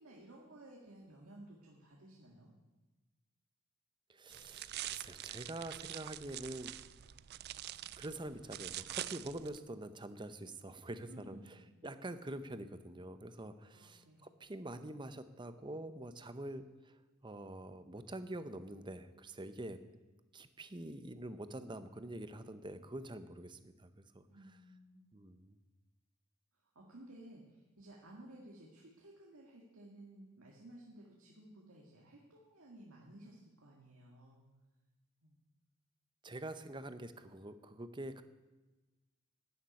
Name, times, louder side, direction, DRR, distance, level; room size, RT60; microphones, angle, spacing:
voice 1, 0.0-2.5 11.1-11.6 13.7-14.3 24.3-25.1 26.8-34.5 35.2-35.3, right 1 dB, 90° right, -2 dB, 2.0 m, -56 dB
voice 2, 4.1-6.7 8.0-11.4 11.8-17.0 17.2-19.8 20.3-24.2 25.1-25.6 36.2-38.2, right 1 dB, 20° right, 11 dB, 0.7 m, -46 dB
sound 1, 4.3-9.6, right 13 dB, 50° right, 0.4 m, -45 dB
12.5 x 7.3 x 9.7 m, 1.1 s
head